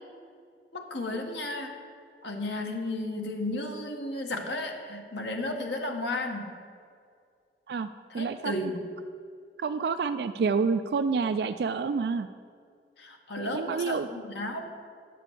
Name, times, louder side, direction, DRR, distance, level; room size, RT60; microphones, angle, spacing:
voice 1, 0.7-1.7 2.2-6.5 8.1-8.8 13.0-14.7, left 2 dB, 90° left, 3 dB, 1.4 m, -33 dB
voice 2, 8.1-8.5 9.6-12.3 13.4-14.1, right 5 dB, 65° right, 9 dB, 0.3 m, -28 dB
10.0 x 6.0 x 8.2 m, 2.2 s
head